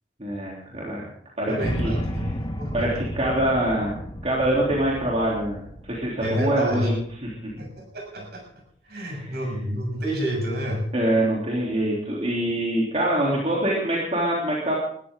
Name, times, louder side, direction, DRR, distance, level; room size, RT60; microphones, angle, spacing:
voice 1, 0.2-1.0 1.4-1.9 2.7-4.0 4.2-5.6 5.9-6.9 7.2-7.5 9.1-9.3 10.9-14.7, right 1 dB, 35° right, -4 dB, 3.4 m, -24 dB
voice 2, 1.5-2.9 6.2-6.9 7.6-8.4 8.9-10.9, equal, 55° right, 1 dB, 6.8 m, -29 dB
sound 1, 1.6-7.7, equal, 25° left, 1.3 m, -33 dB
20.5 x 14.0 x 3.8 m, 0.62 s
head